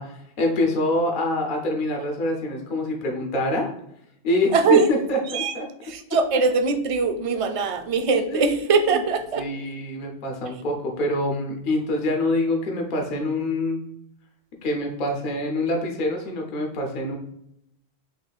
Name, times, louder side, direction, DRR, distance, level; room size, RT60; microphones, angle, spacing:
voice 1, 0.0-3.7 4.2-5.7 8.3-9.0 9.3-13.8 14.6-17.2, left 1 dB, 55° left, 1 dB, 0.9 m, -25 dB
voice 2, 4.5-4.9 5.3-5.5 5.8-9.4, right 4 dB, 50° right, 6 dB, 0.4 m, -21 dB
6.3 x 2.6 x 2.3 m, 0.78 s
omnidirectional pair, 1.1 m